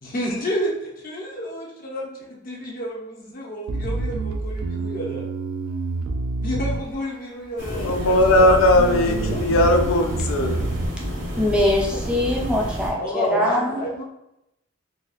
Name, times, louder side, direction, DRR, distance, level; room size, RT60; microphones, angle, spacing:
voice 1, 0.0-5.3 6.4-9.5 12.1-12.2 13.0-14.0, equal, 45° left, -3 dB, 0.8 m, -30 dB
Bass guitar, 3.7-7.3 7.9-8.4 8.8-10.9, right 3 dB, 90° right, 0.3 m, -28 dB
sound 1, 7.6-12.9, equal, 55° right, 0.9 m, -29 dB
voice 2, 7.7-10.7, left 1 dB, 80° left, 4 dB, 0.4 m, -18 dB
voice 3, 11.4-13.8, left 1 dB, 5° right, -3 dB, 0.5 m, -22 dB
4.0 x 2.3 x 2.4 m, 0.85 s
head